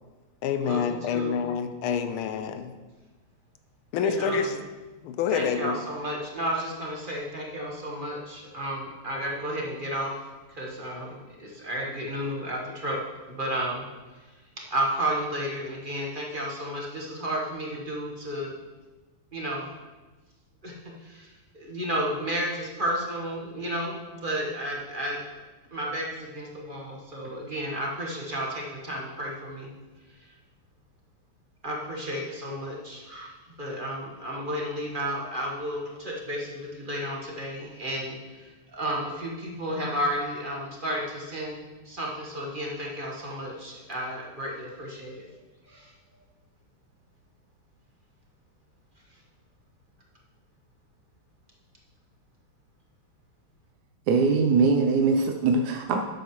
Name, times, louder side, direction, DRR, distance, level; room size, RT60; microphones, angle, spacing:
voice 1, 0.4-2.7 3.9-4.6 5.0-5.7, left 6 dB, 80° left, 1.5 m, -27 dB
voice 2, 1.1-1.5 4.0-4.6 5.3-10.2 10.5-13.9 14.6-18.5 19.3-19.7 20.6-25.2 25.7-29.7 30.2-30.3 31.6-45.3 45.6-45.9, right 1 dB, 25° right, 1.3 m, -32 dB
voice 3, 54.1-56.0, right 4 dB, 65° right, 1.0 m, -22 dB
12.0 x 8.1 x 3.2 m
omnidirectional pair, 2.4 m